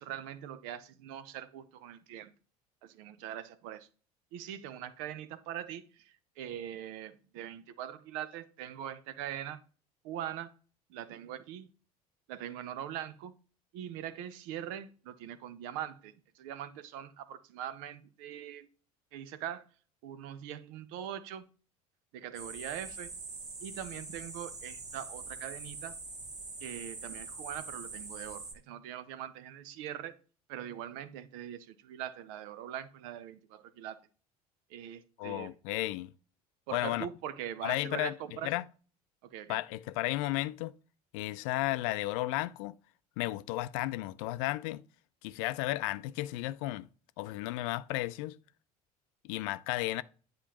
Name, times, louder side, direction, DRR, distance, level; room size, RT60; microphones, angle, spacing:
voice 1, 0.0-2.3 2.8-3.9 4.3-9.6 10.0-10.5 10.9-11.7 12.3-13.3 13.7-18.7 19.1-19.6 20.0-21.4 22.1-23.1 23.6-26.0 26.6-30.2 30.5-34.0 34.7-35.5 36.7-38.5 39.2-39.6, right 10 dB, 65° right, 0.8 m, -42 dB
sound 1, 22.3-28.5, right 3 dB, 40° right, 2.0 m, -44 dB
voice 2, 35.2-36.1 36.7-37.1 37.6-38.1 38.4-38.6 39.5-40.7 41.1-42.8 43.2-44.8 45.2-46.9 47.2-48.4 49.2-50.0, left 17 dB, 60° left, 0.5 m, -33 dB
10.0 x 5.1 x 3.0 m
figure-of-eight pair, 65°, 19 cm